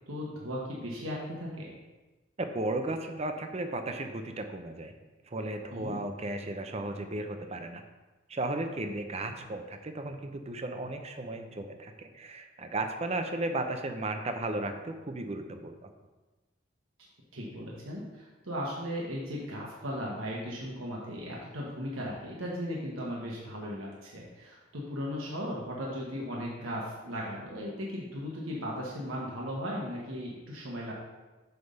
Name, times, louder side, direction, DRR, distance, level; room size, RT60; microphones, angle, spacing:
voice 1, 0.1-1.8 5.7-6.0 17.3-30.9, equal, 85° right, -4 dB, 1.2 m, -37 dB
voice 2, 2.4-4.9 5.2-7.8 8.3-15.9, right 2 dB, 30° right, 6 dB, 0.6 m, -35 dB
7.9 x 3.5 x 5.4 m, 1.2 s
head